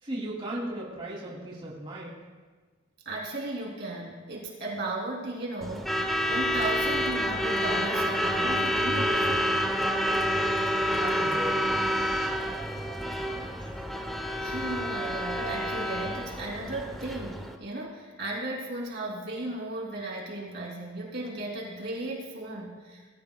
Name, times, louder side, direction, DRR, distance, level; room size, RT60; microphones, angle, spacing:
voice 1, 0.0-2.2 10.9-11.8, right 1 dB, 25° right, -5 dB, 3.0 m, -36 dB
voice 2, 3.0-6.0 6.3-9.5 14.4-23.0, right 2 dB, 55° right, -2 dB, 3.2 m, -35 dB
Truck / Alarm, 5.6-17.6, equal, ahead, 0.8 m, -28 dB
21.0 x 15.0 x 2.4 m, 1.4 s
head